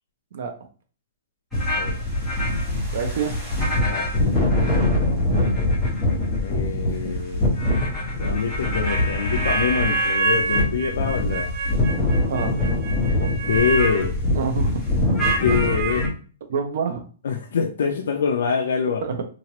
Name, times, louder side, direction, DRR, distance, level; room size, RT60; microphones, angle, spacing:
sound 1, 1.5-16.1, left 1 dB, ahead, 1.1 m, -23 dB
voice 1, 2.9-3.4 5.3-5.5 12.3-12.6 14.3-14.9 15.5-15.7 16.5-17.1 19.0-19.2, right 6 dB, 50° right, 6 dB, 0.6 m, -27 dB
voice 2, 3.8-4.3 6.4-7.5 8.2-11.5 13.2-14.2 15.4-16.1 17.2-19.0, left 6 dB, 65° left, 2 dB, 0.4 m, -25 dB
3.0 x 2.4 x 2.9 m, 0.39 s
hypercardioid pair, 180°, 0 cm